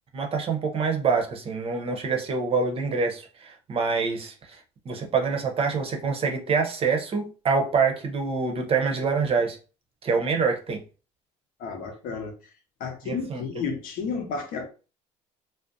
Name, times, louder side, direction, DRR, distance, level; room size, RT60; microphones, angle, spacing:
voice 1, 0.1-4.6 4.9-9.6 10.0-10.8 13.0-13.6, right 5 dB, 40° right, 0.6 m, -26 dB
voice 2, 11.6-12.3 12.8-14.7, left 5 dB, 65° left, 0.7 m, -32 dB
2.5 x 2.1 x 2.6 m
supercardioid pair, 75°, 16 cm